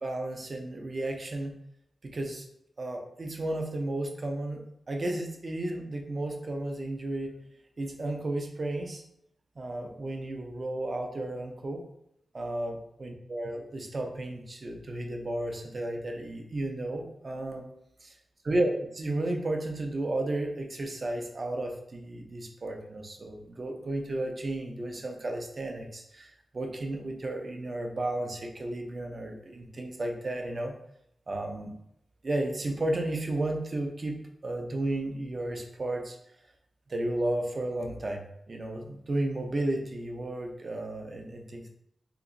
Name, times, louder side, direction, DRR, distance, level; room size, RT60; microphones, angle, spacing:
voice 1, 0.0-1.5 2.0-2.4 2.8-7.3 7.8-9.0 9.6-11.8 12.3-17.7 18.4-30.7 31.3-31.8 32.2-34.2 34.4-36.2 36.9-41.7, right 1 dB, 35° right, 3 dB, 0.5 m, -33 dB
3.6 x 2.9 x 2.5 m, 0.77 s
wide cardioid pair, 160°, 0 cm